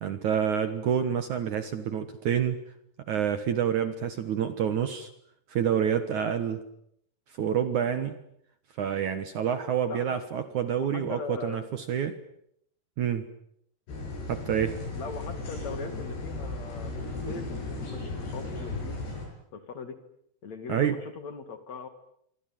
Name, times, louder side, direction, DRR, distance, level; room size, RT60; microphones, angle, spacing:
voice 1, 0.0-2.6 3.1-5.1 5.5-6.6 7.4-8.2 8.8-12.2 13.0-13.3 14.3-14.8 20.7-21.0, right 8 dB, 60° right, 11 dB, 2.3 m, -28 dB
voice 2, 9.9-10.2 10.7-11.6 14.9-19.0 19.5-20.0 20.4-21.9, left 5 dB, 45° left, 9 dB, 3.3 m, -40 dB
sound 1, 13.9-19.3, left 2 dB, 90° left, 10.0 m, -36 dB
26.5 x 24.5 x 9.1 m, 0.73 s
omnidirectional pair, 4.7 m